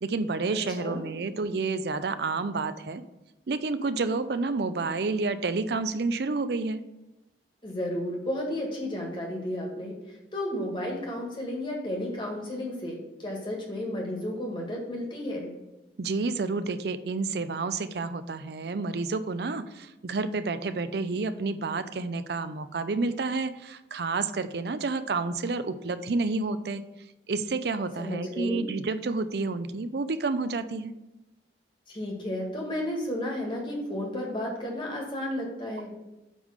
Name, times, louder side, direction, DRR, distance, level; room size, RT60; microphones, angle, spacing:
voice 1, 0.0-3.0 3.5-6.8 16.0-26.8 27.3-30.9, right 3 dB, 60° right, 12 dB, 0.5 m, -29 dB
voice 2, 0.5-1.0 7.6-15.5 28.0-28.6 31.9-36.0, left 1 dB, 25° left, -1 dB, 1.8 m, -33 dB
8.4 x 3.6 x 6.4 m, 0.98 s
head